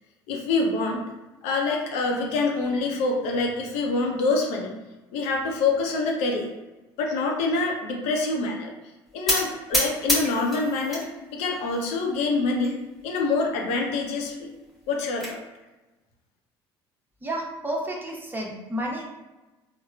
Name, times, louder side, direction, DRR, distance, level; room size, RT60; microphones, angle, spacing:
voice 1, 0.3-1.0 1.4-4.7 5.1-6.5 7.0-8.7 9.1-11.0 11.3-12.8 13.0-14.5 14.9-15.4, left 3 dB, 65° left, 0 dB, 0.7 m, -26 dB
sound 1, 9.3-11.1 11.4-12.1 12.6-12.7 13.0-13.1 13.5-13.6 14.7-15.3, equal, ahead, 1.1 m, -27 dB
voice 2, 17.2-19.0, right 1 dB, 15° right, -1 dB, 0.9 m, -31 dB
4.1 x 2.2 x 2.4 m, 1.1 s
hypercardioid pair, 60°, 13 cm